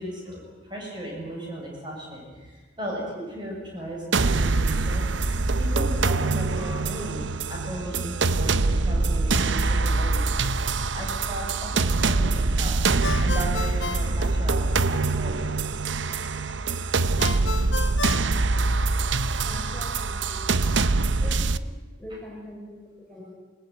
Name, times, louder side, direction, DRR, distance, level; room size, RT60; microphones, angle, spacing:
voice 1, 0.0-5.1 5.4-12.8 13.2-15.7, right 1 dB, 25° right, -2 dB, 7.5 m, -37 dB
sound 1, 4.1-21.6, right 3 dB, 70° right, 0.8 m, -24 dB
Ringtone, 13.0-15.0 17.2-19.2, left 4 dB, 70° left, 1.1 m, -33 dB
voice 2, 19.4-20.5 21.2-21.6 22.0-23.3, left 1 dB, 5° left, -4 dB, 6.5 m, -42 dB
27.0 x 19.5 x 9.5 m, 1.3 s
head